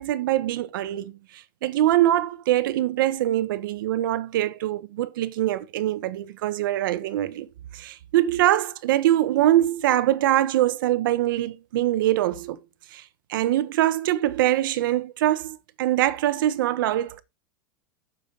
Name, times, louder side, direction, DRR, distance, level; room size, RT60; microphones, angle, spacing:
voice 1, 0.0-7.5 7.7-12.6 12.9-13.0 13.3-17.2, right 13 dB, 80° right, 1.1 m, -23 dB
9.5 x 7.2 x 3.8 m
supercardioid pair, 175°, 11 cm